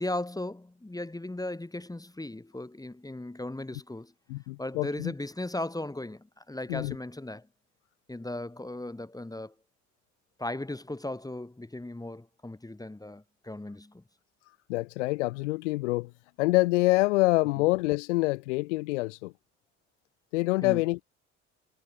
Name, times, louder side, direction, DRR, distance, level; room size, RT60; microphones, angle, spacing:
voice 1, 0.0-4.1 4.6-7.5 8.1-9.5 10.4-14.0 20.6-20.8, left 1 dB, 10° left, 2.7 m, -37 dB
voice 2, 4.3-5.1 6.7-6.9 14.7-16.1 16.4-19.3 20.3-21.0, left 22 dB, 70° left, 2.1 m, -26 dB
figure-of-eight pair, 50°, 36 cm